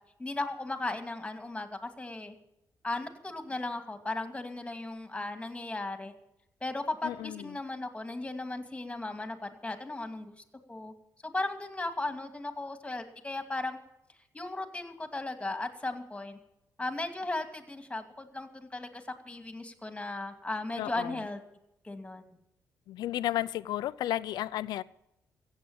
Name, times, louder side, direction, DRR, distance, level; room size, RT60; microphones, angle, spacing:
voice 1, 0.2-2.3 2.8-6.1 6.6-10.3 10.7-10.9 11.2-13.8 14.3-16.4 16.8-21.4 21.8-22.2, left 2 dB, 15° left, 6 dB, 2.5 m, -36 dB
voice 2, 7.0-7.5 20.8-21.2 22.9-24.8, left 13 dB, 85° left, 17 dB, 0.5 m, -33 dB
15.5 x 8.4 x 8.8 m, 0.83 s
cardioid pair, 70°, 7 cm